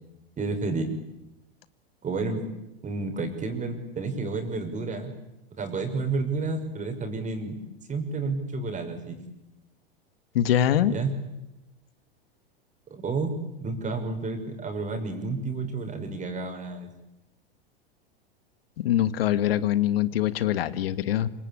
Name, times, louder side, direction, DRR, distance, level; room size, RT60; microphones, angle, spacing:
voice 1, 0.4-1.0 2.0-2.5 2.8-5.1 5.5-7.5 7.9-9.2 10.9-11.1 12.9-16.9, right 3 dB, 25° right, 6 dB, 6.0 m, -30 dB
voice 2, 10.3-10.9 18.8-21.3, left 11 dB, 70° left, 14 dB, 1.8 m, -23 dB
26.5 x 25.5 x 8.8 m, 0.93 s
hypercardioid pair, 105°, 30 cm